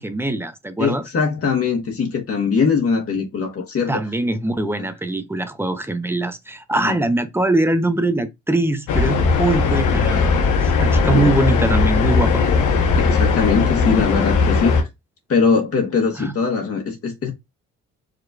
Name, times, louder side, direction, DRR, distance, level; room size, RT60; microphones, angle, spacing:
voice 1, 0.0-1.0 3.9-10.3 10.6-12.5 16.2-16.4, right 2 dB, 10° right, 0.7 m, -22 dB
voice 2, 0.8-4.0 4.8-4.9 6.8-7.0 11.1-11.3 13.0-14.8 15.3-17.3, left 5 dB, 50° left, 1.3 m, -21 dB
sound 1, 8.9-14.8, left 4 dB, 85° left, 1.1 m, -18 dB
4.9 x 3.1 x 2.4 m
cardioid pair, 90°, 30 cm